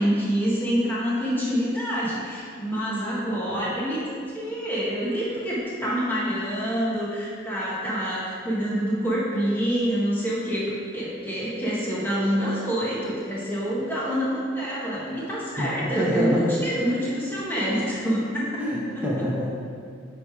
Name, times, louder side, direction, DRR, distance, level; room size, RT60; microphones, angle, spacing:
voice 1, 0.0-18.5 18.9-19.0, equal, 10° left, -8 dB, 1.7 m, -26 dB
voice 2, 15.6-16.5 18.6-19.5, equal, 5° right, -6 dB, 1.4 m, -26 dB
9.3 x 3.4 x 5.0 m, 2.1 s
head